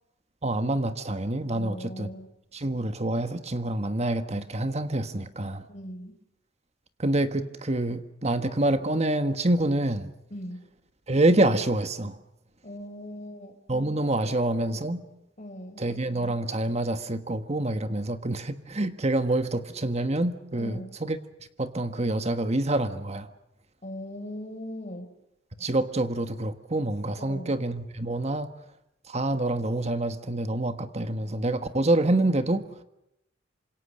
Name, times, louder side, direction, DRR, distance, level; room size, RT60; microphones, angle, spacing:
voice 1, 0.4-2.1 2.5-5.6 7.0-10.1 11.1-12.2 13.7-15.0 15.8-21.2 21.6-23.3 25.6-28.5 29.1-32.7, right 1 dB, 35° right, 9 dB, 1.5 m, -27 dB
voice 2, 1.5-2.3 5.7-6.1 10.3-10.6 12.6-13.5 14.3-14.9 15.4-15.8 20.6-21.0 23.8-25.1 27.2-27.5, equal, 40° left, 4 dB, 4.1 m, -40 dB
28.0 x 26.5 x 6.5 m, 0.83 s
head